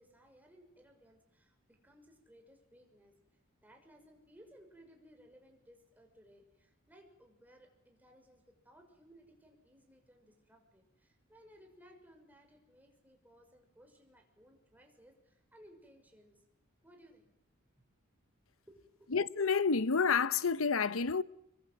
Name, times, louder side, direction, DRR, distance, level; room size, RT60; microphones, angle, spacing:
voice 1, 0.0-3.1 3.6-16.4 16.8-17.3 18.7-19.1, equal, 10° right, 6.0 m, -61 dB
voice 2, 19.1-21.2, left 5 dB, 75° left, 0.9 m, -29 dB
26.5 x 23.5 x 7.9 m
head